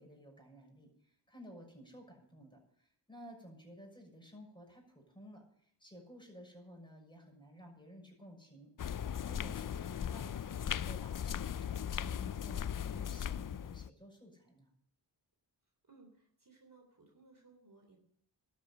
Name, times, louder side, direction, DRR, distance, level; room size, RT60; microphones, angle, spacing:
voice 1, 0.0-8.7 9.2-14.7, equal, 10° left, 1 dB, 6.5 m, -54 dB
sound 1, 8.8-13.9, left 9 dB, 45° left, 0.5 m, -38 dB
voice 2, 15.9-18.0, right 3 dB, 45° right, 3 dB, 3.5 m, -62 dB
12.5 x 8.0 x 9.8 m, 0.66 s
cardioid pair, 50°, 44 cm